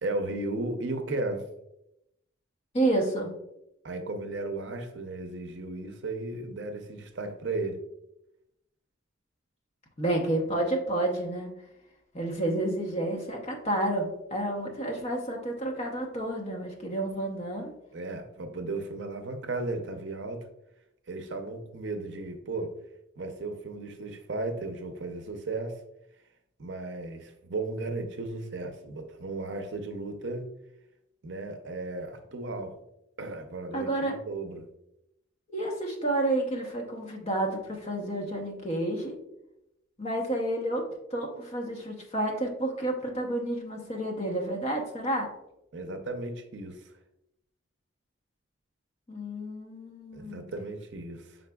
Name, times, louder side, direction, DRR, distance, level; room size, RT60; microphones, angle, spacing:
voice 1, 0.0-1.5 3.8-7.8 17.9-20.5 21.1-22.7 23.2-25.8 26.6-30.5 31.2-32.7 33.2-34.7 45.7-46.8 50.1-51.4, right 2 dB, 60° right, 6 dB, 0.6 m, -35 dB
voice 2, 2.7-3.4 10.0-11.5 12.1-17.7 33.7-34.2 35.5-39.1 40.0-45.3 49.1-50.5, right 1 dB, 30° left, 1 dB, 0.8 m, -30 dB
5.9 x 3.9 x 2.2 m, 0.84 s
head